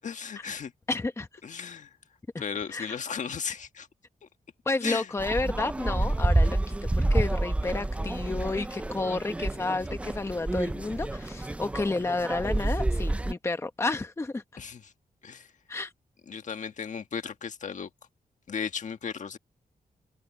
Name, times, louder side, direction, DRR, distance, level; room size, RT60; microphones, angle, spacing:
voice 1, 0.0-0.7 1.4-1.9 2.4-3.9 4.8-5.1 14.6-14.9 15.2-15.5 16.3-17.9 18.5-19.4, left 6 dB, 55° left, 1.5 m, -35 dB
voice 2, 0.9-1.3 2.7-3.0 4.6-14.6 15.7-15.9, left 3 dB, 20° left, 0.9 m, -31 dB
sound 1, 5.2-13.3, right 2 dB, 10° right, 0.3 m, -28 dB
open air
wide cardioid pair, 165°, 15 cm